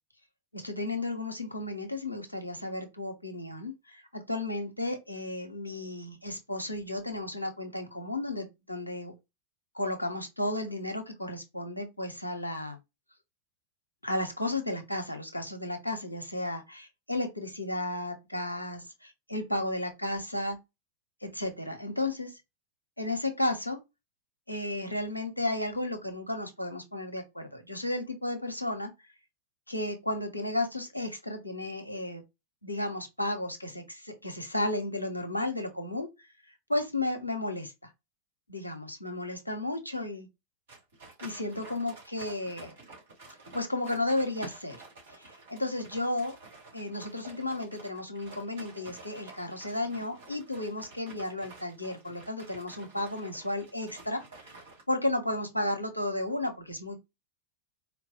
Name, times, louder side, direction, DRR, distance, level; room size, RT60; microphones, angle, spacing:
voice 1, 0.5-9.1 9.7-12.8 14.0-20.6 21.2-22.4 23.0-23.8 24.5-28.9 29.7-32.2 32.6-36.3 36.7-37.9 38.5-40.3 41.2-42.8 43.5-44.8 45.1-46.4 46.7-54.6 54.9-57.0, left 1 dB, 85° left, 0.7 m, -33 dB
sound 1, 40.7-54.8, right 3 dB, 60° right, 1.9 m, -50 dB
4.2 x 2.3 x 2.7 m
figure-of-eight pair, 90°, 0 cm